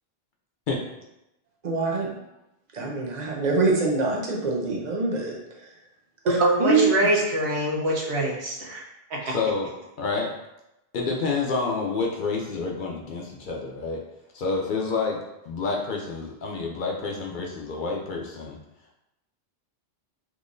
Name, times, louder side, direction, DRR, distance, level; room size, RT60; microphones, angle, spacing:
voice 1, 1.6-2.1 2.7-5.7 6.3-7.0, right 3 dB, 45° right, -1 dB, 0.7 m, -25 dB
voice 2, 6.2-8.8 9.1-9.3, right 1 dB, 90° right, -3 dB, 1.1 m, -24 dB
voice 3, 9.3-9.7 10.0-10.3 10.9-14.0 14.3-15.2 15.5-18.6, left 4 dB, 60° left, -1 dB, 0.6 m, -28 dB
3.7 x 3.0 x 2.5 m, 0.89 s
omnidirectional pair, 1.1 m